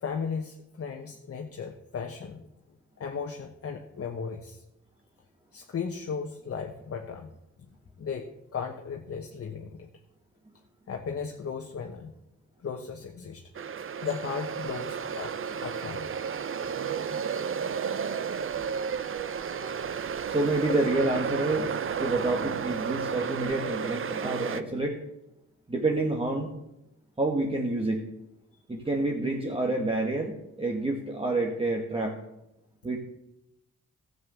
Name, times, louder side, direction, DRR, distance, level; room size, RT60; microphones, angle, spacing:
voice 1, 0.0-2.5 3.0-4.6 5.5-7.3 8.0-9.9 10.9-12.1 12.6-13.5 14.0-15.3 15.6-16.1 19.4-19.7, left 6 dB, 50° left, 3 dB, 1.2 m, -36 dB
sound 1, 13.5-24.6, right 7 dB, 45° right, 0.7 m, -32 dB
voice 2, 20.3-21.7 22.0-25.0 25.7-26.5 27.2-28.0 28.7-32.2 32.8-33.0, right 2 dB, 20° right, 0 dB, 1.7 m, -28 dB
12.5 x 8.0 x 6.9 m, 0.87 s
cardioid pair, 90°, 30 cm